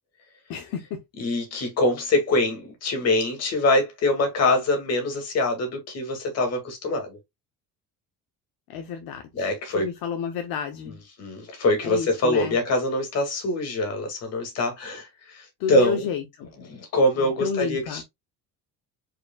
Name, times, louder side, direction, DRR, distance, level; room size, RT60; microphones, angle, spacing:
voice 1, 0.5-1.0 8.7-11.0 11.8-12.6 15.6-16.5 17.2-18.0, left 7 dB, 65° left, 0.9 m, -31 dB
voice 2, 1.2-7.2 9.3-9.9 11.2-16.1 16.6-18.0, left 2 dB, 40° left, 2.1 m, -24 dB
4.9 x 4.5 x 2.3 m
cardioid pair, 175°, 39 cm